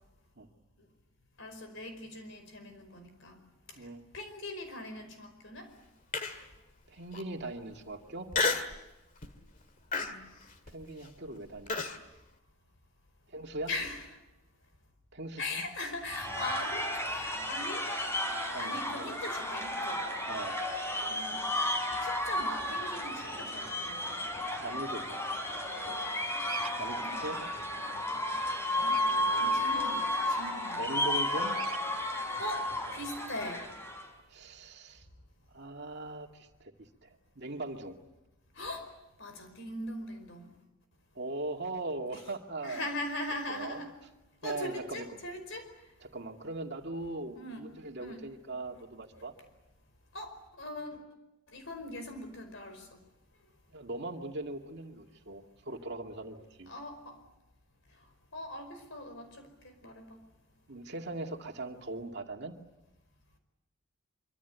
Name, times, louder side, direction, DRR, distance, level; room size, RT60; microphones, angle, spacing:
voice 1, 1.4-3.4 4.1-5.7 10.0-10.2 13.7-14.0 15.4-17.8 18.4-20.0 21.1-21.4 22.0-24.1 27.0-27.5 28.7-30.8 32.4-33.6 38.6-38.9 39.2-40.5 42.6-43.9 44.4-45.7 47.3-47.6 48.0-48.2 50.1-51.0 51.5-52.9 56.7-57.2 58.3-60.2, left 1 dB, 60° left, 8 dB, 5.0 m, -41 dB
Human voice, 6.1-6.6 7.1-7.2 8.3-8.8 9.2-9.5 9.9-12.0, left 4 dB, 40° left, 2.0 m, -31 dB
voice 2, 6.9-8.3 10.7-11.7 13.3-13.7 15.1-15.6 18.5-19.1 20.3-20.6 24.6-25.0 26.8-27.4 29.1-29.7 30.7-31.6 34.3-35.1 35.5-36.7 37.0-38.0 41.2-42.9 43.5-43.8 44.4-45.2 46.0-49.3 53.7-56.7 60.7-62.5, right 2 dB, 50° right, 3 dB, 2.3 m, -40 dB
sound 1, 16.0-34.1, left 1 dB, 10° left, 4.3 m, -33 dB
Bird vocalization bird call bird song, 26.4-26.7 28.8-29.1 31.5-31.8, right 10 dB, 75° right, 1.3 m, -41 dB
25.0 x 25.0 x 8.3 m, 0.97 s
head